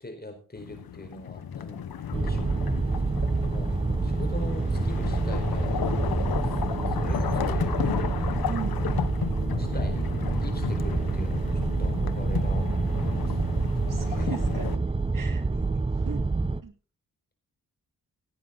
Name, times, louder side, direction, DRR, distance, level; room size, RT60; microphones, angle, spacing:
voice 1, 0.0-2.7 3.5-6.5 6.9-8.0 8.7-8.9 9.5-10.1 10.4-13.4 14.1-14.3 15.2-15.3, left 1 dB, 25° left, 5 dB, 4.6 m, -42 dB
sound 1, 0.6-14.8, left 9 dB, 80° left, 1.1 m, -34 dB
sound 2, 2.1-16.6, right 3 dB, 15° right, 0.7 m, -27 dB
voice 2, 8.5-9.0 13.9-14.9 15.1-16.2 16.6-16.7, right 6 dB, 60° right, 8 dB, 2.0 m, -39 dB
17.0 x 9.6 x 3.9 m, 0.36 s
cardioid pair, 75°, 36 cm